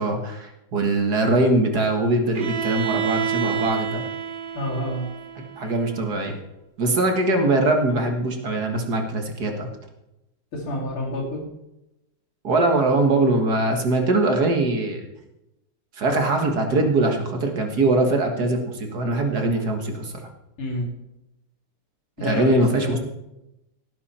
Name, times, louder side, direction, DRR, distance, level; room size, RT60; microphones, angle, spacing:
voice 1, 0.0-4.0 5.4-6.4 6.8-9.7 12.4-15.0 16.0-20.3 22.2-23.0, right 2 dB, 50° right, 4 dB, 2.1 m, -22 dB
Bowed string instrument, 2.3-6.2, right 8 dB, 75° right, 0.5 m, -29 dB
voice 2, 4.5-5.1 10.5-11.5 20.6-20.9 22.2-23.0, left 1 dB, 75° left, -7 dB, 3.7 m, -28 dB
17.0 x 10.5 x 4.4 m, 0.91 s
omnidirectional pair, 2.4 m